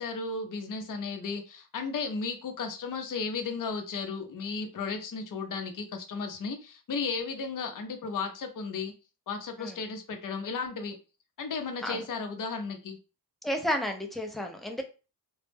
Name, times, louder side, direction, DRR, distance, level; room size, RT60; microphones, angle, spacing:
voice 1, 0.0-8.9 9.3-11.0 11.4-13.0, left 4 dB, 50° left, 5 dB, 0.6 m, -34 dB
voice 2, 13.4-14.8, equal, ahead, 4 dB, 0.4 m, -31 dB
2.1 x 2.1 x 3.2 m, 0.32 s
cardioid pair, 90°, 40 cm